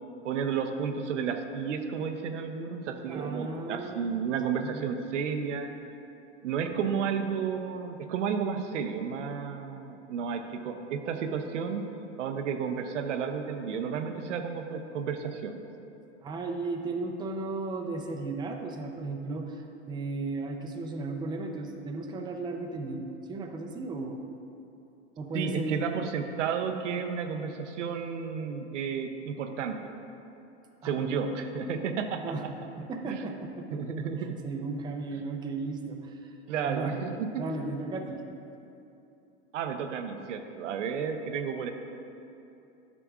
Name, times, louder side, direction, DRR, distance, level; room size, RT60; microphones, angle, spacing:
voice 1, 0.2-5.7 6.4-11.9 12.2-15.6 25.3-29.9 30.8-32.3 33.0-33.2 33.7-34.4 36.5-37.5 39.5-41.7, right 6 dB, 90° right, 6 dB, 0.6 m, -32 dB
voice 2, 3.1-4.1 4.4-4.9 16.2-24.3 25.2-25.9 30.8-31.3 32.2-32.4 32.8-36.3 36.7-37.0 37.4-38.2, right 3 dB, 15° right, 3 dB, 0.4 m, -35 dB
11.0 x 5.9 x 2.4 m, 2.8 s
hypercardioid pair, 110°, 36 cm